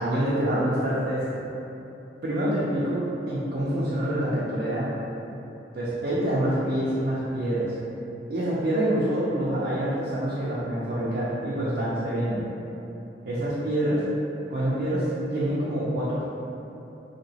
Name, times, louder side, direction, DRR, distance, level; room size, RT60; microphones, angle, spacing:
voice 1, 0.0-1.4 2.2-5.0 5.7-7.7 8.3-12.4 13.2-14.0 14.5-16.2, right 1 dB, 50° right, -9 dB, 0.4 m, -26 dB
2.9 x 2.8 x 2.7 m, 2.9 s
head